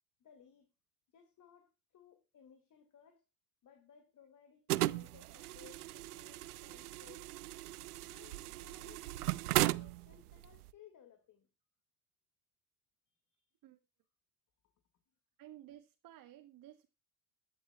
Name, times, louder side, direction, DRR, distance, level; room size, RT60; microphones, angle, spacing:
voice 1, 0.2-0.7 1.1-3.2 3.6-7.3 8.1-11.5 13.3-13.5 14.6-14.7, left 8 dB, 40° left, 2.3 m, -62 dB
sound 1, 4.7-10.7, right 17 dB, 80° right, 0.7 m, -37 dB
voice 2, 15.4-16.9, right 13 dB, 50° right, 1.5 m, -56 dB
21.5 x 10.5 x 2.3 m
hypercardioid pair, 65°, 45 cm